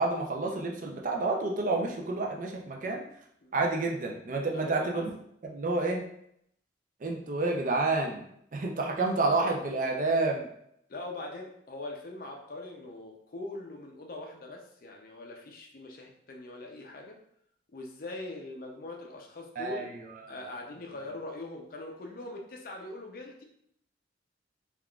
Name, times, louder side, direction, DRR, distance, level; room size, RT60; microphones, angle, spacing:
voice 1, 0.0-3.0 3.5-5.1 5.4-6.0 7.0-8.2 8.5-10.5 19.6-20.4, right 3 dB, 45° right, 1 dB, 0.4 m, -29 dB
voice 2, 4.5-5.0 10.9-17.2 17.7-19.9 20.3-23.4, left 2 dB, 50° left, 1 dB, 0.5 m, -42 dB
3.5 x 2.3 x 2.3 m, 0.72 s
head